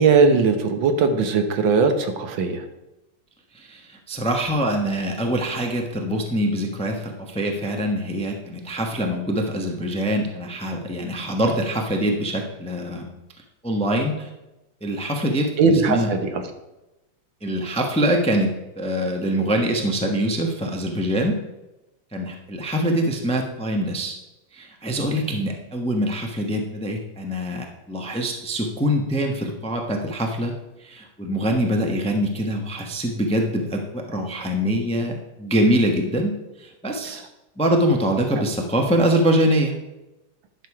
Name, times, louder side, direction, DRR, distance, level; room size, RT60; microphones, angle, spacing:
voice 1, 0.0-2.6 15.6-16.4, right 4 dB, 80° right, 7 dB, 1.7 m, -19 dB
voice 2, 3.5-13.1 13.6-14.3 14.8-16.1 17.4-21.3 22.1-24.1 24.5-30.5 30.8-36.3 36.6-37.2 37.6-39.7, equal, 5° left, 2 dB, 0.6 m, -24 dB
10.5 x 6.5 x 4.8 m, 0.99 s
omnidirectional pair, 2.1 m